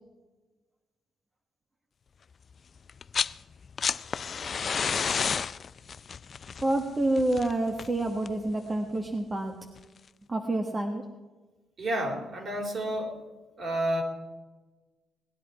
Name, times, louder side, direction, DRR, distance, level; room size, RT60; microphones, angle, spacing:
sound 1, 2.9-3.4 3.6-8.5 9.8-9.9, left 6 dB, 45° left, 0.4 m, -31 dB
voice 1, 6.6-9.5 10.3-11.0, right 2 dB, 25° right, 2 dB, 1.5 m, -28 dB
voice 2, 11.8-13.2 13.6-14.0, right 1 dB, 45° right, 1 dB, 4.1 m, -30 dB
19.5 x 10.5 x 4.9 m, 1.2 s
cardioid pair, 90°, 0 cm